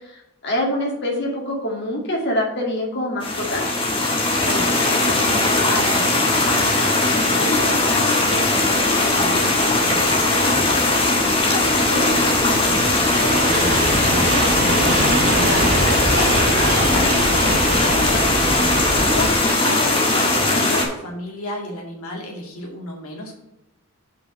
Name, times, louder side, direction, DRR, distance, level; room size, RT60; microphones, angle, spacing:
voice 1, 0.0-3.6 11.9-12.2 18.8-19.3, left 1 dB, 50° left, -1 dB, 2.2 m, -25 dB
sound 1, 3.2-20.8, left 2 dB, 25° left, 1.5 m, -19 dB
voice 2, 4.4-23.3, left 1 dB, 80° left, 0 dB, 2.3 m, -32 dB
sound 2, 9.3-19.3, right 1 dB, 35° right, 2.3 m, -24 dB
5.4 x 5.0 x 6.5 m, 0.91 s
head